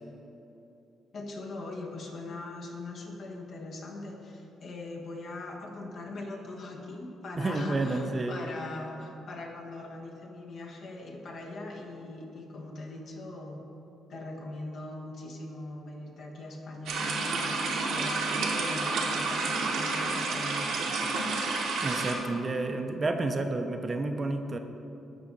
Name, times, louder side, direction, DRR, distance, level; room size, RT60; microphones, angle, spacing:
voice 1, 1.1-13.6 14.1-21.1, left 2 dB, 65° left, -1 dB, 1.4 m, -41 dB
voice 2, 7.3-8.4 21.8-24.6, right 2 dB, 30° right, 6 dB, 0.6 m, -30 dB
sound 1, 16.9-22.1, right 3 dB, 80° right, 1.2 m, -30 dB
13.0 x 4.7 x 4.0 m, 3.0 s
cardioid pair, 90°, 0 cm